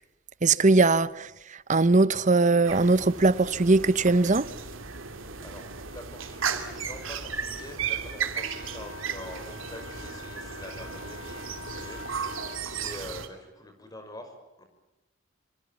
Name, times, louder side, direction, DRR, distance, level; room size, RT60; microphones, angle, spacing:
voice 1, 0.4-4.5, right 3 dB, 40° right, 0.9 m, -21 dB
sound 1, 2.6-13.3, right 6 dB, 80° right, 2.7 m, -35 dB
voice 2, 5.1-14.6, left 1 dB, 20° left, 5.7 m, -45 dB
Wind instrument woodwind instrument, 8.3-12.7, left 4 dB, 80° left, 2.6 m, -45 dB
26.0 x 26.0 x 7.4 m
head